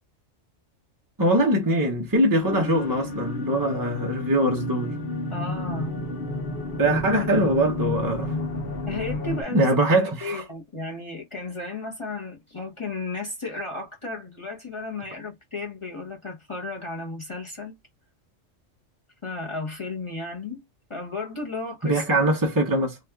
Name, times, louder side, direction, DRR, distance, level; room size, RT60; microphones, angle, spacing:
voice 1, 1.2-5.0 6.8-8.3 9.5-10.4 21.8-23.0, right 1 dB, 30° right, 0.4 m, -22 dB
sound 1, 2.4-9.4, left 2 dB, 50° left, 1.0 m, -31 dB
voice 2, 5.3-6.1 6.9-7.0 8.9-9.7 10.2-17.8 19.2-20.6 20.9-22.0, left 3 dB, 30° left, 0.7 m, -34 dB
2.8 x 2.3 x 3.3 m
omnidirectional pair, 1.3 m